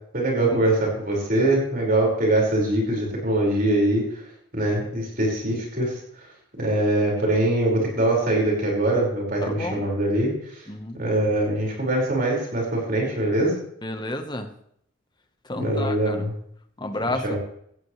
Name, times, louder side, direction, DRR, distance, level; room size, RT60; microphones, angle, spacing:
voice 1, 0.1-4.2 4.5-5.9 6.6-10.3 10.9-13.6 15.5-16.3 17.2-17.4, right 1 dB, 45° right, -2 dB, 5.3 m, -23 dB
voice 2, 9.4-9.8 10.7-11.0 13.8-14.5 15.5-16.3 16.8-17.4, left 1 dB, 20° left, 6 dB, 1.2 m, -31 dB
17.0 x 14.5 x 3.3 m, 0.69 s
head